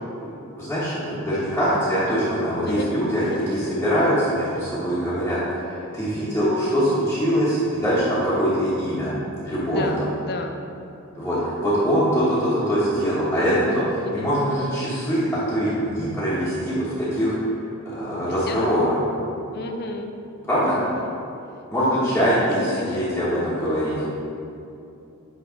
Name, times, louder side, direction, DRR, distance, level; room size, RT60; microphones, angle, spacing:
voice 1, 0.2-5.4 5.9-9.1 9.4-10.1 11.1-13.5 14.1-17.3 17.8-18.9 20.5-20.8 21.7-23.9, equal, 10° left, -13 dB, 1.3 m, -23 dB
voice 2, 9.6-10.5 13.5-14.3 18.2-18.7 19.5-20.1 21.8-23.1 23.6-24.1, left 2 dB, 45° left, 4 dB, 0.5 m, -33 dB
8.5 x 3.4 x 5.1 m, 2.7 s
head